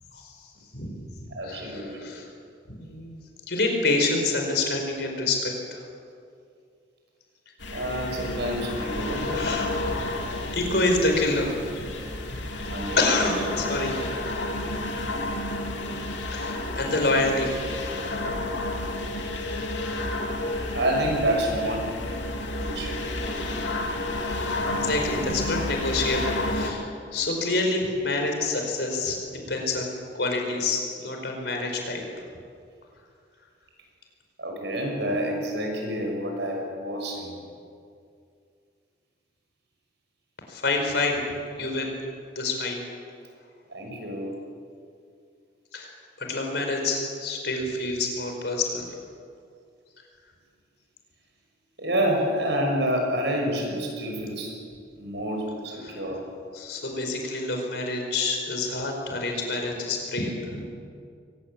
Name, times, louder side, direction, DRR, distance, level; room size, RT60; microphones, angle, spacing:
voice 1, 0.1-0.9 1.2-2.3 2.8-3.1 3.5-5.8 9.3-10.0 10.5-11.8 12.3-12.4 13.0-14.0 16.3-17.6 24.7-29.2 29.5-32.0 40.5-41.2 41.6-42.0 42.3-42.8 45.7-48.8 55.8-56.0 56.5-60.7, left 2 dB, 65° left, 2 dB, 5.0 m, -27 dB
voice 2, 1.3-2.1 7.7-9.5 12.7-13.3 20.7-21.9 22.5-23.0 34.4-37.3 43.7-44.3 51.8-54.6 55.0-56.2, right 1 dB, 70° right, 1 dB, 6.5 m, -28 dB
sound 1, 7.6-26.7, left 2 dB, 90° left, 3.2 m, -31 dB
23.0 x 19.0 x 8.5 m, 2.3 s
head